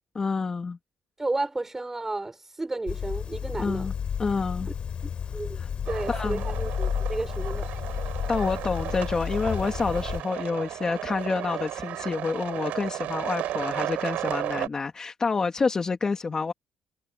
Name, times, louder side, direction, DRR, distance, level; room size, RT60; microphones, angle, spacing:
voice 1, 0.1-0.8 3.6-3.9 4.2-4.7 5.6-5.7 6.1-6.4 8.3-16.5, left 4 dB, 25° left, 3.1 m, -28 dB
voice 2, 1.2-3.9 4.7-4.8 5.3-7.7, right 2 dB, 15° right, 5.9 m, -32 dB
sound 1, 2.9-10.2, left 7 dB, 45° left, 5.6 m, -32 dB
sound 2, 5.8-14.7, right 13 dB, 80° right, 5.3 m, -34 dB
cardioid pair, 130°, 3 cm